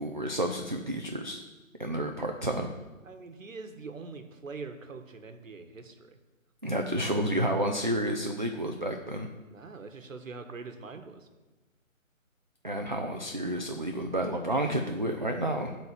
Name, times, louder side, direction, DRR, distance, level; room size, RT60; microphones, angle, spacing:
voice 1, 0.0-1.4 1.8-2.7 6.6-9.3 12.6-15.8, right 1 dB, 35° right, 3 dB, 0.4 m, -30 dB
voice 2, 3.0-6.2 9.5-11.3, right 4 dB, 70° right, 7 dB, 1.3 m, -43 dB
11.0 x 4.1 x 7.3 m, 1.2 s
hypercardioid pair, 170°, 41 cm